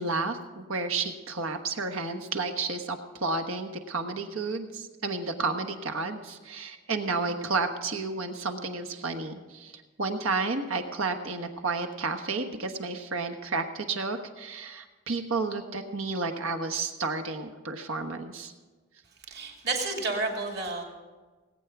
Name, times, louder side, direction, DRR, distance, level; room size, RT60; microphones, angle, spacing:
voice 1, 0.0-9.7 10.0-18.5, right 3 dB, 75° right, 6 dB, 1.2 m, -31 dB
voice 2, 19.3-20.8, right 3 dB, 50° right, 1 dB, 2.5 m, -30 dB
19.0 x 8.8 x 6.0 m, 1.3 s
head